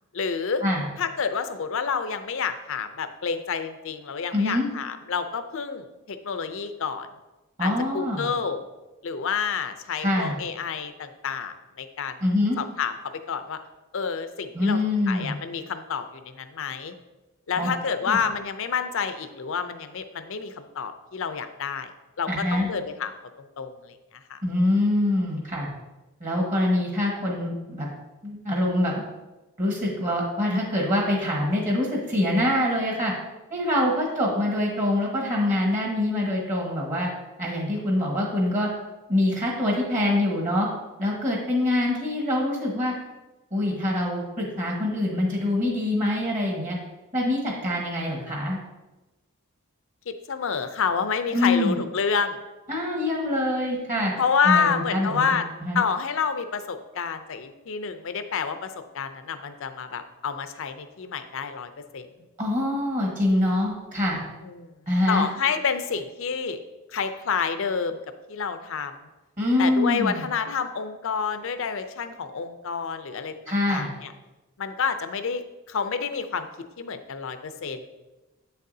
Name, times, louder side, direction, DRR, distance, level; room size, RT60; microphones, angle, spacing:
voice 1, 0.1-0.6 1.0-7.1 7.6-8.6 9.0-12.2 12.6-12.9 13.3-13.6 13.9-16.9 17.5-21.9 22.2-23.1 23.6-24.0 24.3-24.4 50.1-52.4 54.2-55.5 55.7-62.1 64.4-64.7 65.1-66.6 66.9-68.0 68.3-68.9 69.6-73.3 73.7-74.1 74.6-75.4 75.7-76.5 76.8-77.9, left 6 dB, 60° left, 9 dB, 0.5 m, -28 dB
voice 2, 4.3-4.7 7.6-8.3 10.0-10.3 12.2-12.6 14.5-15.4 17.6-17.7 18.1-18.2 22.3-22.7 24.4-25.7 26.2-27.9 28.2-29.0 29.6-33.1 33.5-37.1 37.4-38.7 39.1-40.7 41.0-42.9 43.5-46.8 47.1-48.6 51.3-51.8 52.7-54.1 54.4-55.3 55.6-55.8 62.4-64.2 64.9-65.3 69.4-70.2 73.5-73.9, left 1 dB, 35° right, -2 dB, 1.5 m, -24 dB
8.1 x 6.5 x 2.7 m, 1.1 s
head